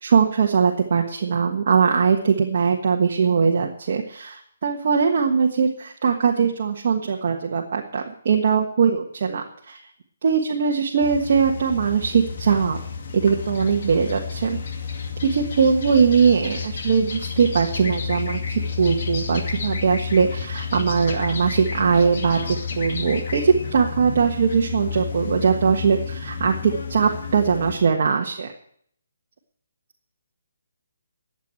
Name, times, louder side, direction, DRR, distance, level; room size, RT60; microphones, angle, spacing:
voice 1, 0.0-9.8 10.2-12.8 13.1-14.6 15.2-28.5, right 6 dB, 45° right, 1 dB, 1.5 m, -21 dB
sound 1, 11.0-27.8, left 5 dB, 45° left, 2.3 m, -31 dB
12.0 x 8.0 x 8.9 m, 0.64 s
hypercardioid pair, 165°, 0 cm